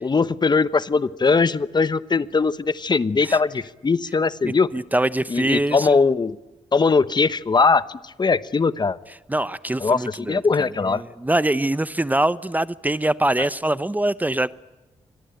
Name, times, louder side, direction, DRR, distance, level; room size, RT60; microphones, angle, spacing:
voice 1, 0.0-4.7 5.3-6.4 6.7-9.0 9.8-11.0 13.4-13.5, left 4 dB, 40° left, 1.0 m, -20 dB
voice 2, 4.4-6.0 9.3-14.5, right 1 dB, 15° right, 0.8 m, -24 dB
26.5 x 21.5 x 9.1 m
cardioid pair, 60°, 11 cm